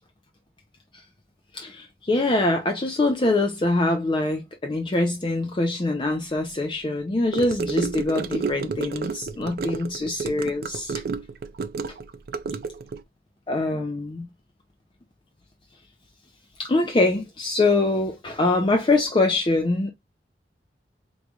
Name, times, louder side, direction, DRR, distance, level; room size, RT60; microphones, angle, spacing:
voice 1, 1.5-11.0 13.5-14.3 16.6-19.9, left 2 dB, 30° left, 0.4 m, -24 dB
Gurgling / Car passing by / Sink (filling or washing), 7.3-13.0, right 5 dB, 55° right, 0.4 m, -31 dB
3.8 x 3.0 x 2.3 m
head